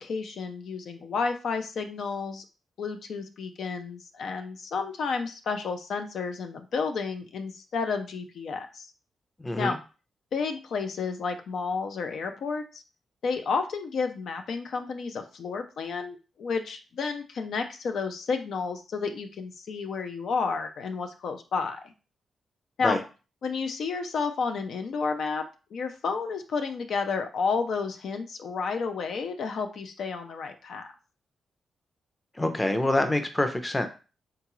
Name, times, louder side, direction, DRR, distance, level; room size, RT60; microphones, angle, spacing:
voice 1, 0.0-2.4 2.8-8.9 9.6-9.8 10.3-12.8 13.2-21.9 22.8-23.0 23.4-25.5 25.7-30.8, left 5 dB, 70° left, 6 dB, 0.4 m, -31 dB
voice 2, 9.4-9.8 22.8-23.0 32.4-33.9, left 1 dB, 15° left, 7 dB, 0.6 m, -26 dB
3.7 x 2.3 x 3.0 m, 0.33 s
cardioid pair, 85°, 0 cm